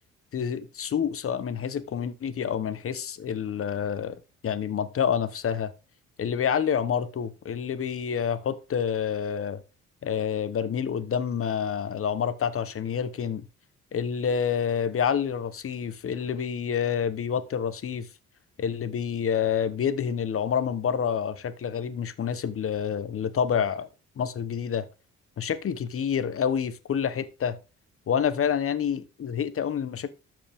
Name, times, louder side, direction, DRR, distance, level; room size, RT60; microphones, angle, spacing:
voice 1, 0.3-5.7 6.2-9.6 10.0-13.5 13.9-18.1 18.6-23.9 24.2-24.8 25.4-27.6 28.1-30.1, left 7 dB, 45° left, 1.1 m, -28 dB
13.0 x 5.1 x 3.6 m
cardioid pair, 90°, 30 cm